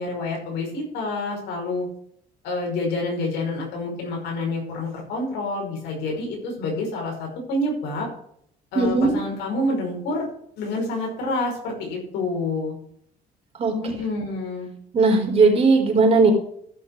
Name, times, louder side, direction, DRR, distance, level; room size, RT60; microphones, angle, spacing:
voice 1, 0.0-1.9 2.4-8.1 8.7-10.3 10.6-12.8 13.8-14.7, left 2 dB, 90° left, 0 dB, 5.5 m, -28 dB
voice 2, 8.7-9.1 13.6-13.9 14.9-16.3, right 3 dB, 35° right, 1 dB, 3.9 m, -18 dB
14.5 x 6.6 x 4.7 m, 0.67 s
cardioid pair, 110°, 17 cm